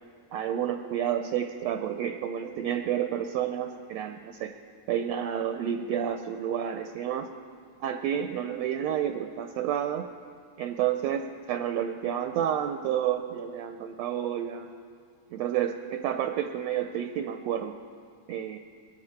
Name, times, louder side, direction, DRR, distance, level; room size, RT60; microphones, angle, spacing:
voice 1, 0.3-4.5 4.9-7.3 7.8-10.1 10.6-14.7 15.3-17.8 18.3-18.6, right 10 dB, 80° right, 6 dB, 1.5 m, -30 dB
21.5 x 13.5 x 4.4 m, 2.3 s
omnidirectional pair, 3.5 m